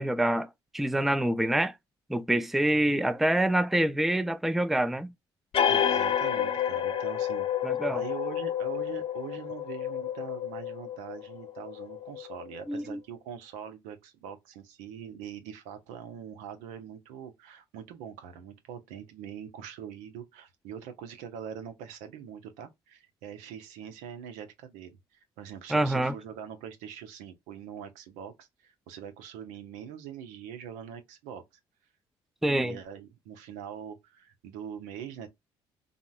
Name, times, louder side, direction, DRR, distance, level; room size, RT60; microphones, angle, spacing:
voice 1, 0.0-1.7 2.1-5.1 7.6-8.0 12.7-13.0 25.7-26.1 32.4-32.8, right 1 dB, ahead, 0.3 m, -26 dB
sound 1, 5.5-12.8, left 9 dB, 50° left, 0.7 m, -30 dB
voice 2, 5.6-7.5 7.9-31.4 32.5-35.3, right 8 dB, 85° right, 0.6 m, -43 dB
3.7 x 2.1 x 2.2 m
supercardioid pair, 60°, 12 cm